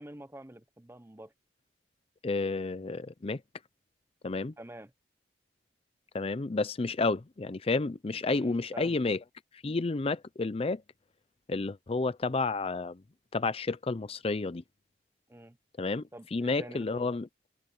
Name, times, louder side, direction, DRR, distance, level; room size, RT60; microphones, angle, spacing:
voice 1, 0.0-1.3 4.6-4.9 8.3-9.0 15.3-15.6 16.1-17.1, right 1 dB, 15° right, 0.8 m, -47 dB
voice 2, 2.2-3.4 4.2-4.5 6.1-9.2 9.5-10.8 11.5-13.0 13.3-14.6 15.8-17.3, left 3 dB, 35° left, 0.5 m, -31 dB
open air
head